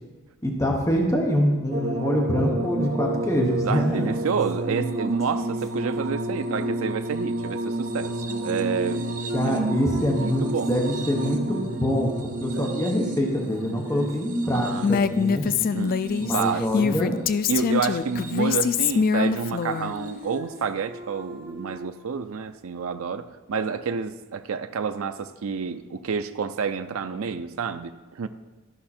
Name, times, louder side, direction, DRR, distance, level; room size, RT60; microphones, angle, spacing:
voice 1, 0.4-4.1 9.3-15.4 16.2-17.2, equal, 15° left, 0 dB, 1.2 m, -25 dB
sound 1, 1.7-17.0 17.8-18.5 20.0-20.1, right 2 dB, 40° right, 0.8 m, -31 dB
voice 2, 3.6-8.1 8.4-9.1 9.4-9.8 10.1-10.7 12.5-12.7 14.5-14.9 15.7-16.0 16.3-16.6 17.5-28.3, right 5 dB, 70° right, 9 dB, 0.4 m, -29 dB
sound 2, 3.8-7.1 8.3-12.0 13.4-16.5 17.8-18.8 19.1-22.1, equal, 15° right, 1.2 m, -38 dB
Female speech woman speaking, 14.8-19.9, left 6 dB, 45° left, 0.3 m, -24 dB
13.5 x 5.7 x 4.3 m, 1.2 s
head